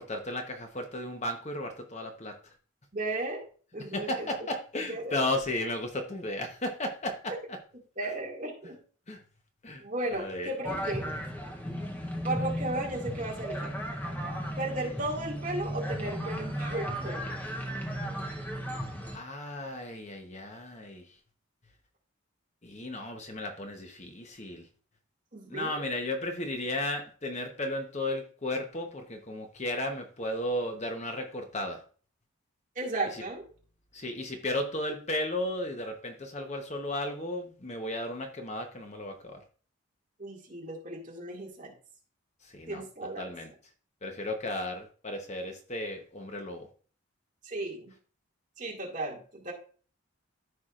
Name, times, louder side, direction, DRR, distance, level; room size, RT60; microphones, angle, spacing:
voice 1, 0.0-2.5 3.9-7.2 9.1-9.2 9.6-9.8 10.1-10.5 19.1-21.1 22.6-24.7 25.5-31.8 33.1-33.2 33.9-39.4 42.4-42.8 43.2-43.5 44.0-46.7, left 1 dB, 30° left, 4 dB, 0.9 m, -34 dB
voice 2, 2.9-3.4 3.7-4.3 4.9-5.3 8.0-8.8 9.8-11.1 12.2-13.7 14.6-17.4 25.3-25.9 32.8-33.5 40.2-41.7 42.7-43.3 47.4-47.9 48.6-49.5, right 2 dB, 35° right, -2 dB, 2.1 m, -35 dB
sound 1, 10.6-19.2, equal, 10° left, 0.8 m, -35 dB
14.0 x 4.7 x 2.4 m, 0.41 s
head